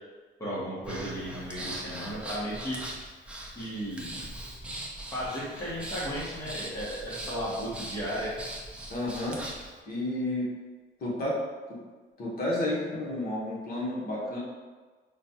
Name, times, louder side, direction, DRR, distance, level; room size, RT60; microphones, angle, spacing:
voice 1, 0.4-2.8 3.5-4.3 5.1-8.3, equal, 15° left, -7 dB, 1.0 m, -35 dB
Breathing, 0.8-9.7, right 1 dB, 5° right, 0.4 m, -40 dB
voice 2, 8.9-9.4 9.9-10.5 11.0-11.4 11.7-11.8 12.2-14.4, left 1 dB, 45° left, -6 dB, 1.0 m, -31 dB
5.0 x 2.3 x 2.8 m, 1.4 s
cardioid pair, 140°, 21 cm